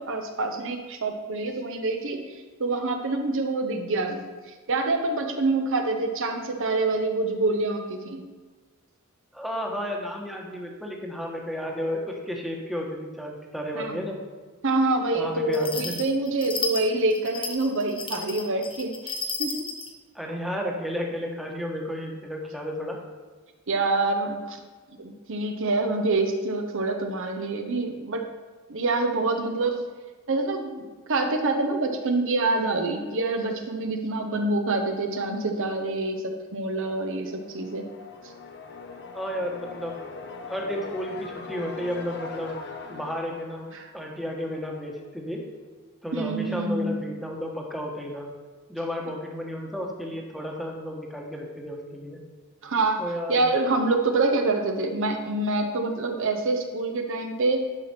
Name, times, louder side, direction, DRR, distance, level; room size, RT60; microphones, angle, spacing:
voice 1, 0.0-2.2 2.6-4.3 4.7-8.3 13.7-14.0 14.6-19.7 23.7-24.6 25.0-28.3 28.7-29.9 30.3-37.9 46.1-47.0 52.6-53.0 53.3-57.6, right 2 dB, 60° right, 4 dB, 1.0 m, -26 dB
voice 2, 9.3-14.2 15.1-16.0 20.1-23.0 39.1-39.9 40.5-42.6 42.9-45.4 46.0-48.3 48.7-52.2 53.0-53.4, equal, ahead, -1 dB, 1.3 m, -32 dB
sound 1, 15.5-19.9, left 4 dB, 25° left, 1.0 m, -33 dB
sound 2, 37.0-44.8, left 4 dB, 50° left, 0.9 m, -41 dB
11.0 x 5.9 x 4.4 m, 1.4 s
head